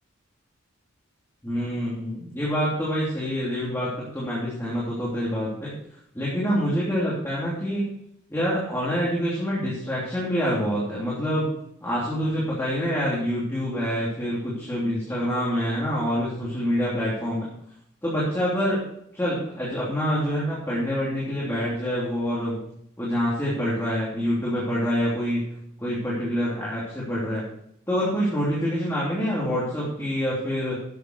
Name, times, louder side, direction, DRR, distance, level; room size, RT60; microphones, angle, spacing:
voice 1, 1.4-5.7 6.1-7.8 8.3-11.5 11.8-17.5 18.0-18.8 19.1-22.6 23.0-25.5 25.8-27.4 27.9-30.8, equal, 10° left, -7 dB, 3.0 m, -26 dB
11.5 x 8.0 x 4.8 m, 0.71 s
head